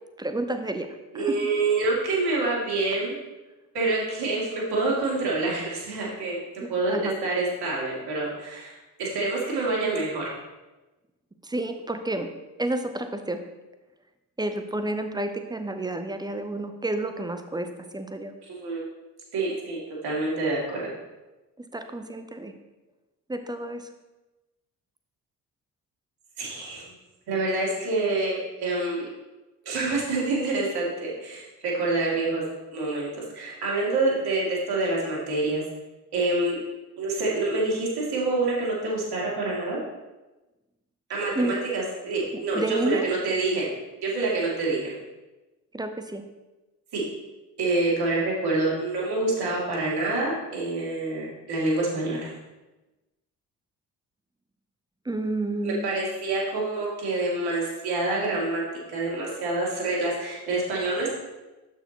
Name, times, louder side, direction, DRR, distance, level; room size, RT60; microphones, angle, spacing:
voice 1, 0.2-0.9 1.1-1.4 6.6-7.1 11.4-12.3 12.6-13.4 14.4-18.3 21.6-22.5 23.3-23.9 41.3-41.6 42.3-43.1 45.7-46.2 55.0-55.9, right 2 dB, 10° right, 8 dB, 0.6 m, -30 dB
voice 2, 1.1-3.2 3.7-10.3 18.4-18.8 19.3-20.9 26.4-26.8 27.3-29.1 29.6-32.4 32.7-35.6 36.1-36.6 37.0-39.8 41.1-43.7 44.0-44.9 46.9-47.0 47.6-52.3 55.6-58.6 58.9-61.1, right 2 dB, 50° right, -4 dB, 2.6 m, -27 dB
12.0 x 4.6 x 3.0 m, 1.1 s
figure-of-eight pair, 45°, 47 cm